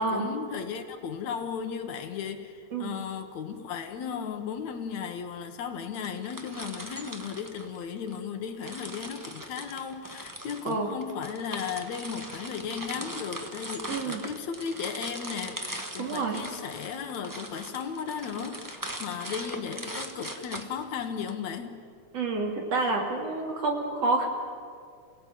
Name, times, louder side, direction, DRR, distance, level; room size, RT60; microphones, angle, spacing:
voice 1, 0.0-21.8, left 7 dB, 70° left, 7 dB, 2.6 m, -35 dB
sound 1, 5.9-8.2 8.6-21.3, right 1 dB, 10° right, 0.9 m, -40 dB
voice 2, 13.9-14.2 16.0-16.4 22.1-24.3, right 3 dB, 55° right, 2 dB, 3.7 m, -28 dB
28.0 x 17.5 x 9.3 m, 2.2 s
omnidirectional pair, 3.4 m